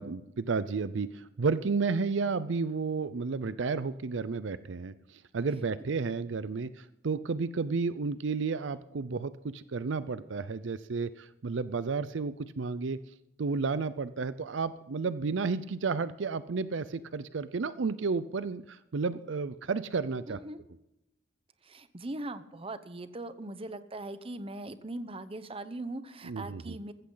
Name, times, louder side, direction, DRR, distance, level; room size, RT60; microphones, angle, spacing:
voice 1, 0.0-13.0 13.4-20.4 26.2-26.8, right 4 dB, 75° right, 15 dB, 0.5 m, -32 dB
voice 2, 20.3-20.6 21.6-26.9, right 2 dB, 30° right, 12 dB, 0.8 m, -40 dB
15.0 x 14.0 x 3.9 m, 0.88 s
head